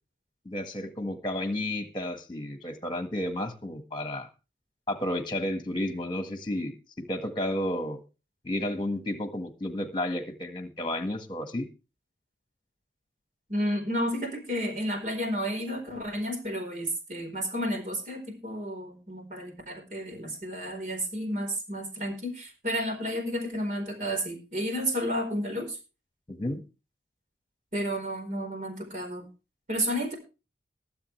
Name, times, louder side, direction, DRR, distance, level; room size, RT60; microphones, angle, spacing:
voice 1, 0.4-4.3 4.9-8.0 8.4-11.7 26.3-26.6, left 1 dB, 25° left, 1.7 m, -32 dB
voice 2, 13.5-25.8 27.7-29.3 29.7-30.1, equal, 45° right, 4.4 m, -31 dB
22.5 x 7.9 x 3.3 m
head